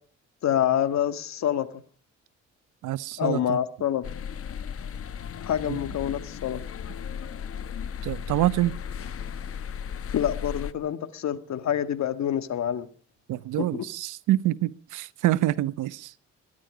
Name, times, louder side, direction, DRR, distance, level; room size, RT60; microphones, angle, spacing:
voice 1, 0.4-1.8 3.2-4.0 5.4-6.6 10.1-12.9 13.6-13.9, left 10 dB, 65° left, 1.7 m, -27 dB
voice 2, 2.8-3.6 5.7-5.8 8.0-8.7 13.3-16.1, right 15 dB, 85° right, 0.8 m, -26 dB
sound 1, 4.0-10.7, left 7 dB, 50° left, 1.1 m, -35 dB
22.5 x 10.5 x 4.9 m
cardioid pair, 90°, 30 cm